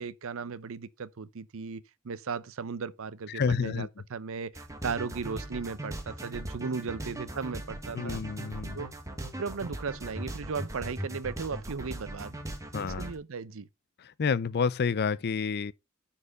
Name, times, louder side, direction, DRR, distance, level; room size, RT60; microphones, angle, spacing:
voice 1, 0.0-8.2 8.7-8.9 9.4-12.3 12.8-13.7, right 5 dB, 65° right, 0.6 m, -36 dB
voice 2, 3.3-3.9 7.9-8.8 12.7-13.1 14.0-15.7, left 5 dB, 50° left, 0.5 m, -29 dB
sound 1, 4.6-13.2, right 1 dB, 15° right, 1.4 m, -39 dB
9.7 x 4.4 x 4.9 m
head